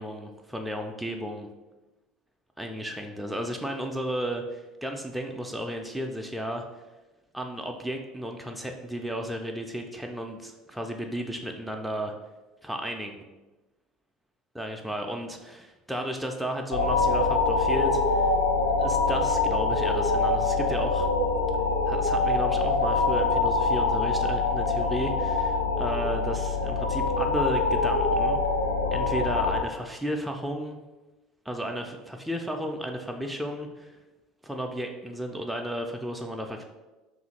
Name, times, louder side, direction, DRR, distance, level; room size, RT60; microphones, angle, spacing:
voice 1, 0.0-1.5 2.6-6.7 7.3-12.1 12.6-13.2 14.6-18.3 18.8-21.1 21.9-28.4 28.9-30.8 31.5-34.0 34.4-36.6, equal, 5° right, 2 dB, 0.3 m, -33 dB
sound 1, 16.7-29.6, left 3 dB, 75° left, 0.4 m, -24 dB
2.8 x 2.4 x 3.9 m, 1.1 s
figure-of-eight pair, 65°, 0 cm